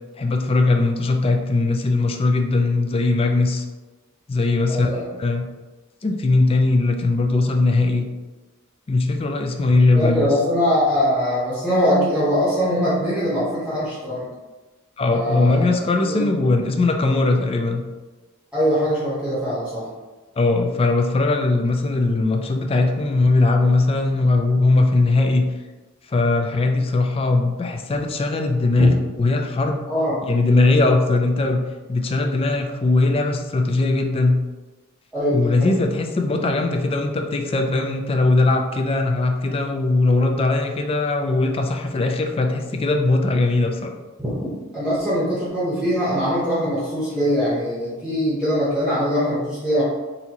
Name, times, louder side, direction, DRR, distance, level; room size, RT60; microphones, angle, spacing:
voice 1, 0.2-3.6 4.3-4.9 5.2-5.4 6.0-8.1 8.9-10.3 15.0-17.8 20.4-25.4 26.1-29.8 30.2-31.6 31.9-34.4 35.3-44.0, left 2 dB, 25° left, 4 dB, 0.3 m, -20 dB
voice 2, 4.7-5.0 9.9-14.2 15.0-15.7 16.1-16.2 18.5-19.8 29.9-30.2 35.1-35.7 44.2-44.3 44.7-49.8, equal, 5° right, -9 dB, 0.9 m, -22 dB
4.1 x 2.7 x 2.9 m, 1.2 s
head